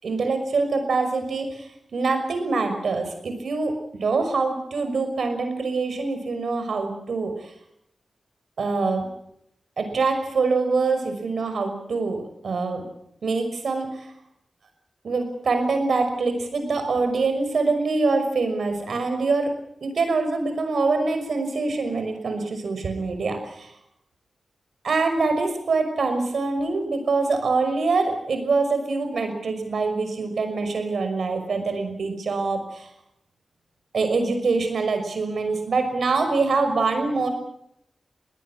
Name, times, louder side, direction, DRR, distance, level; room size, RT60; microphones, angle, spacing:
voice 1, 0.0-7.5 8.6-9.1 9.8-12.8 13.2-14.1 15.0-19.5 19.8-23.7 24.8-32.9 33.9-37.3, right 3 dB, 75° right, 7 dB, 5.8 m, -24 dB
22.0 x 18.5 x 8.9 m, 0.76 s
wide cardioid pair, 165°, 0 cm